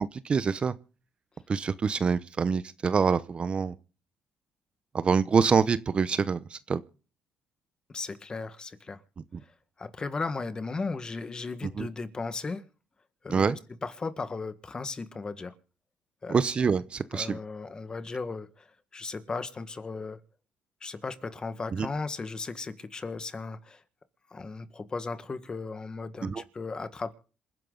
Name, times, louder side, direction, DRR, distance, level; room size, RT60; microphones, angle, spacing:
voice 1, 0.2-0.7 1.5-3.7 4.9-6.8 11.8-11.9 13.3-13.6 16.3-17.4 21.7-21.9 26.2-26.4, right 5 dB, 35° right, 0.8 m, -25 dB
voice 2, 7.9-9.0 9.8-12.6 13.2-15.5 16.2-16.4 17.1-20.2 20.8-23.8 24.3-27.1, left 4 dB, 25° left, 1.6 m, -36 dB
27.5 x 10.5 x 3.9 m
cardioid pair, 115°, 3 cm